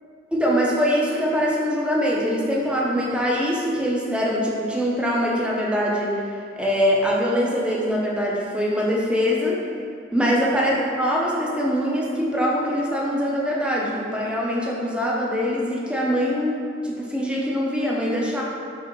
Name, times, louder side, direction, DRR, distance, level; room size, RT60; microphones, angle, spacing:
voice 1, 0.3-6.2 6.6-9.6 10.1-18.4, equal, 5° right, -4 dB, 0.6 m, -23 dB
4.9 x 3.6 x 3.0 m, 2.3 s
head